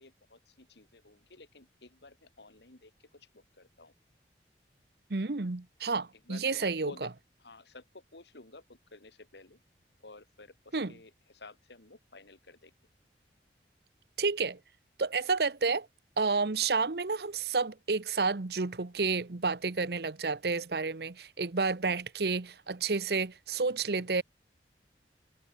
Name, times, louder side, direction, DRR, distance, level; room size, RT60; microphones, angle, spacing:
voice 1, 0.0-3.9 6.1-7.1 7.4-9.6 10.0-12.7, left 2 dB, 80° left, 2.4 m, -53 dB
voice 2, 5.1-6.9 10.7-10.9 14.2-14.6 15.0-15.9 16.2-24.2, right 4 dB, 65° right, 0.9 m, -30 dB
head